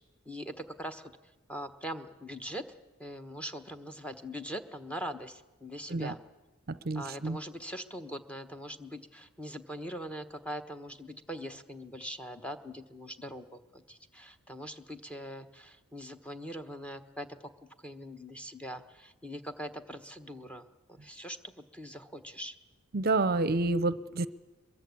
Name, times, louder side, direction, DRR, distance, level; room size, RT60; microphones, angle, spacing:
voice 1, 0.2-1.2 1.5-2.6 3.0-6.2 6.9-22.5, equal, 5° left, 7 dB, 1.2 m, -42 dB
voice 2, 6.7-7.4 22.9-24.3, right 2 dB, 45° right, 16 dB, 0.7 m, -29 dB
23.0 x 22.5 x 8.5 m, 1.1 s
head